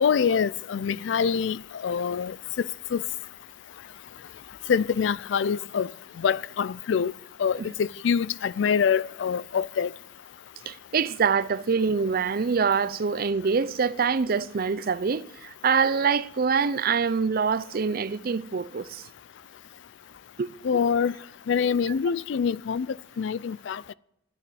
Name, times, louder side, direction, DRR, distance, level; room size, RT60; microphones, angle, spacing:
voice 1, 0.0-3.0 4.7-5.9 6.2-7.1 7.4-9.9 20.6-21.2 21.5-22.9 23.2-23.8, left 6 dB, 75° left, 0.4 m, -25 dB
voice 2, 10.7-19.0 20.4-20.5 21.9-22.0, right 5 dB, 55° right, 0.5 m, -25 dB
11.5 x 9.8 x 7.7 m
head